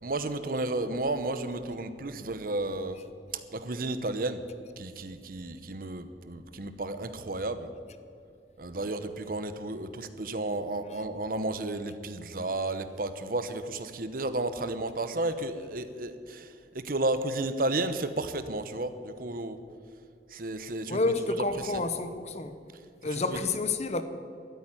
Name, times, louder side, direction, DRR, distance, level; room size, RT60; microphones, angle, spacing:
voice 1, 0.0-3.0 3.3-4.4 4.8-7.7 8.6-19.6 20.3-21.0 21.6-21.8 23.1-23.4, right 2 dB, 55° right, 0.9 m, -32 dB
voice 2, 20.9-22.5 23.0-24.0, left 3 dB, 40° left, 0.9 m, -29 dB
13.5 x 8.8 x 9.9 m
head